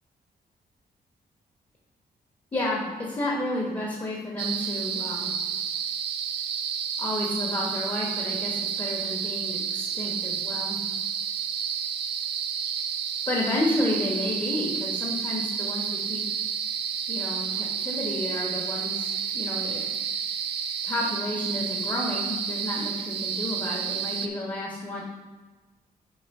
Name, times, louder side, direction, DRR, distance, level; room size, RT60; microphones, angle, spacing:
voice 1, 2.5-5.3 7.0-10.8 13.3-16.2 17.1-19.8 20.8-25.0, left 1 dB, 25° left, -3 dB, 1.5 m, -31 dB
sound 1, 4.4-24.3, right 7 dB, 90° right, 0.6 m, -30 dB
8.5 x 3.4 x 5.4 m, 1.3 s
cardioid pair, 95°, 17 cm